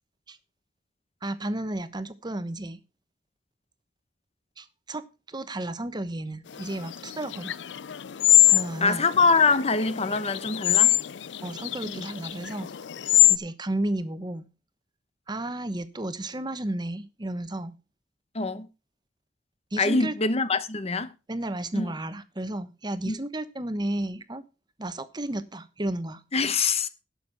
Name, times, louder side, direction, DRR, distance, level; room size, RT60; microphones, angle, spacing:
voice 1, 1.2-2.8 4.6-7.6 8.5-9.1 11.4-12.7 13.3-14.4 15.3-17.7 19.7-20.1 21.3-24.4 24.8-26.2, right 1 dB, 25° right, 1.1 m, -33 dB
sound 1, 6.6-13.4, left 14 dB, 85° left, 0.5 m, -23 dB
voice 2, 8.8-10.9 11.8-12.1 18.3-18.7 19.8-21.1 21.7-21.9 23.1-23.2 26.3-26.9, left 4 dB, 35° left, 1.0 m, -24 dB
12.0 x 7.2 x 5.9 m
head